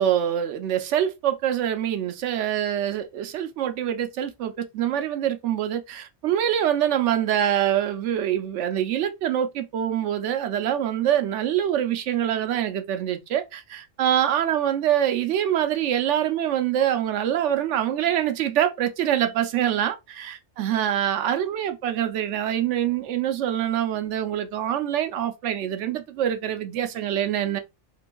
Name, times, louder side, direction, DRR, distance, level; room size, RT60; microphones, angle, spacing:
voice 1, 0.0-27.6, right 10 dB, 80° right, 0.9 m, -25 dB
3.7 x 2.6 x 2.2 m
omnidirectional pair, 1.2 m